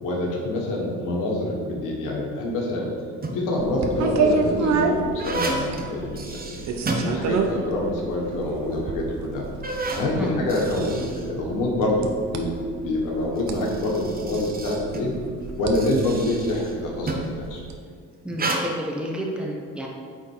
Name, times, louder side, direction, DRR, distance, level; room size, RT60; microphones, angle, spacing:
voice 1, 0.0-2.9 3.3-6.6 6.9-9.4 10.0-12.5 12.8-15.1 15.6-17.6, left 1 dB, 80° left, -2 dB, 1.6 m, -26 dB
sound 1, 3.0-3.6 4.3-7.7 8.0-8.1 8.8-8.9 9.4-12.0 13.2-17.4 18.3-18.6, right 2 dB, 30° right, 1.1 m, -32 dB
sound 2, 3.6-17.8, right 4 dB, 60° right, 0.8 m, -30 dB
voice 2, 18.2-19.9, equal, 5° right, -1 dB, 1.2 m, -30 dB
8.7 x 3.7 x 4.6 m, 2.1 s
supercardioid pair, 85°, 32 cm